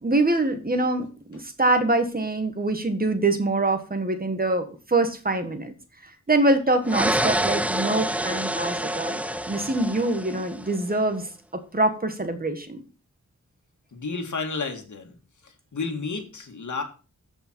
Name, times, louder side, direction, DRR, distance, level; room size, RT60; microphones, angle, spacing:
voice 1, 0.0-5.7 6.3-9.2 9.5-11.3 11.5-12.8, right 2 dB, 30° right, 7 dB, 1.6 m, -24 dB
sound 1, 6.9-10.8, right 1 dB, 5° right, 0.5 m, -27 dB
voice 2, 13.9-15.2 15.4-16.8, left 4 dB, 80° left, 4 dB, 2.0 m, -31 dB
14.0 x 5.4 x 4.5 m, 0.35 s
wide cardioid pair, 95°, 30 cm